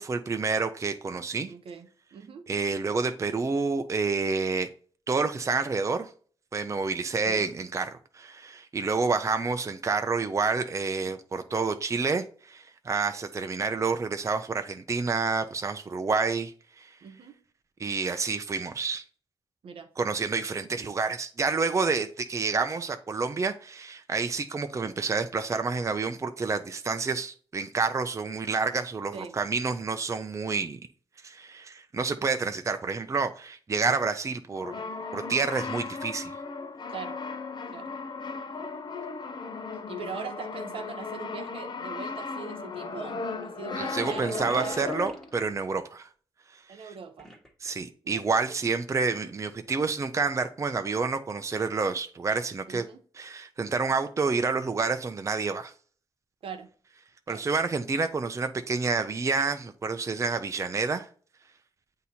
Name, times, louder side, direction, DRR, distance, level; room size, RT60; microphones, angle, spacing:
voice 1, 0.0-1.5 2.5-4.7 5.1-6.1 6.5-17.0 17.8-19.0 20.0-30.8 31.2-34.8 35.1-36.4 43.7-46.1 46.5-46.9 47.6-52.8 53.2-55.7 57.3-61.1, right 4 dB, 30° right, 0.6 m, -29 dB
voice 2, 1.5-2.4 7.2-7.5 17.0-17.3 19.6-19.9 29.1-29.4 36.9-37.2 37.7-37.9 39.9-44.9 46.7-47.3 48.0-48.2 52.7-53.0 56.4-56.7 57.3-57.4, right 6 dB, 75° right, 0.9 m, -41 dB
Brass instrument, 34.5-45.4, left 4 dB, 50° left, 0.7 m, -36 dB
sound 1, 44.0-45.4 47.2-47.7, equal, 5° left, 1.4 m, -48 dB
8.0 x 2.8 x 4.2 m
cardioid pair, 75°, 10 cm